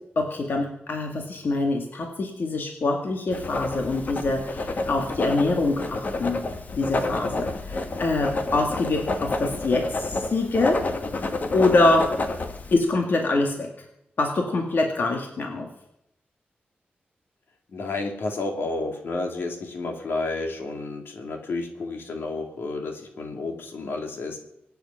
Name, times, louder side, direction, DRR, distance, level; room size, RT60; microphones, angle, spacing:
voice 1, 0.2-6.4 6.8-10.8 11.5-12.1 12.7-13.7 14.2-15.7, left 2 dB, 65° left, 2 dB, 2.1 m, -24 dB
Writing, 3.3-12.7, left 2 dB, 50° left, 1.6 m, -29 dB
voice 2, 17.7-24.4, left 3 dB, 85° left, 3 dB, 2.8 m, -31 dB
24.5 x 9.3 x 5.8 m, 0.82 s
wide cardioid pair, 140°, 4 cm